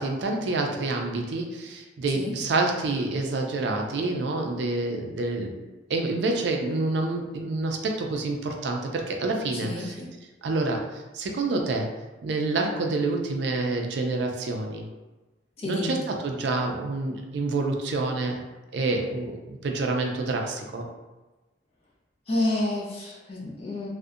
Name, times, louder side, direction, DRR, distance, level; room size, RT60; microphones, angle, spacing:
voice 1, 0.0-5.6 5.9-9.9 10.4-11.9 12.2-14.9 15.6-18.4 18.7-20.9, right 3 dB, 65° right, 2 dB, 0.4 m, -27 dB
voice 2, 9.5-10.1 15.6-15.9 22.3-23.9, left 2 dB, 30° left, -5 dB, 0.4 m, -29 dB
2.6 x 2.1 x 2.4 m, 1.2 s
head